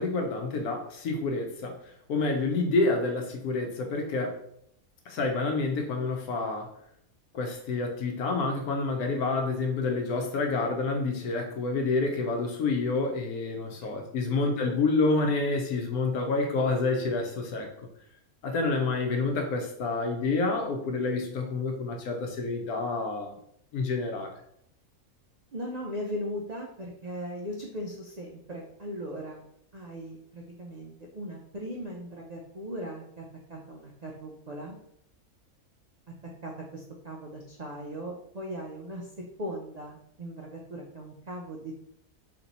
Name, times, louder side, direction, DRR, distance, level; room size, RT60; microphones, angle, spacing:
voice 1, 0.0-1.8 2.1-4.4 5.1-6.7 7.3-17.7 18.4-23.3 23.7-24.3, left 3 dB, 85° left, 3 dB, 1.3 m, -28 dB
voice 2, 25.5-29.4 29.7-33.2 33.5-34.8 36.4-39.1 39.4-41.7, equal, 65° right, -1 dB, 0.4 m, -38 dB
3.3 x 3.0 x 3.9 m, 0.71 s
omnidirectional pair, 1.5 m